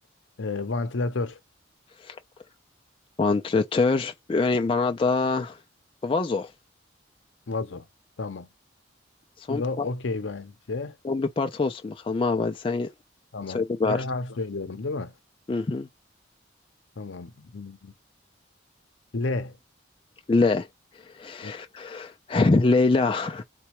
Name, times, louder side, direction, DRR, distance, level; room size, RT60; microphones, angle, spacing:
voice 1, 0.4-1.4 7.5-7.9 8.2-8.5 9.5-11.0 13.3-15.1 17.0-17.9 19.1-19.6 21.4-21.5, left 3 dB, 75° left, 0.6 m, -31 dB
voice 2, 3.2-5.6 6.0-6.5 9.4-9.9 11.0-12.9 13.5-14.0 15.5-15.9 20.3-20.7 21.1-23.4, left 3 dB, 25° left, 0.3 m, -24 dB
4.1 x 2.2 x 2.9 m
head